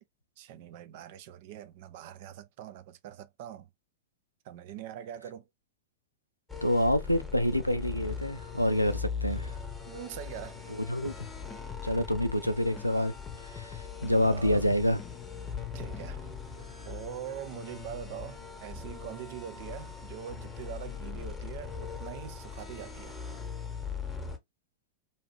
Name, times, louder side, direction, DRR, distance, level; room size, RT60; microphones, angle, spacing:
voice 1, 0.4-3.7 4.5-5.4 9.9-10.8 14.1-14.7 15.7-16.3 16.6-23.2, right 10 dB, 50° right, 0.5 m, -43 dB
sound 1, 6.5-24.4, left 6 dB, 10° left, 1.1 m, -40 dB
voice 2, 6.6-9.5 10.7-11.1 11.8-13.1 13.4-15.0, equal, 90° left, 0.4 m, -27 dB
sound 2, 11.0-12.9 13.3-16.2, left 11 dB, 30° left, 0.6 m, -45 dB
2.8 x 2.4 x 3.0 m
figure-of-eight pair, 90°, 0 cm